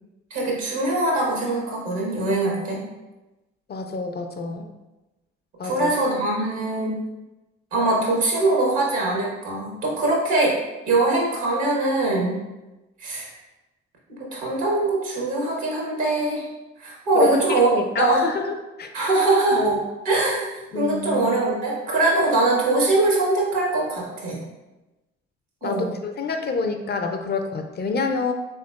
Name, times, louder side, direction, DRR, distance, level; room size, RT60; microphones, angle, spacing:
voice 1, 0.3-2.8 5.6-7.0 7.7-10.6 10.9-12.4 13.0-13.3 14.3-16.4 16.8-17.7 18.0-18.3 18.9-19.7 20.0-24.4 25.6-25.9, right 2 dB, 70° right, -2 dB, 1.1 m, -22 dB
voice 2, 3.7-4.7 5.6-5.9 17.1-19.1 19.5-19.8 20.7-21.3 25.6-28.3, left 4 dB, 35° left, 5 dB, 0.4 m, -27 dB
3.5 x 2.9 x 2.3 m, 1.0 s
hypercardioid pair, 45°, 30 cm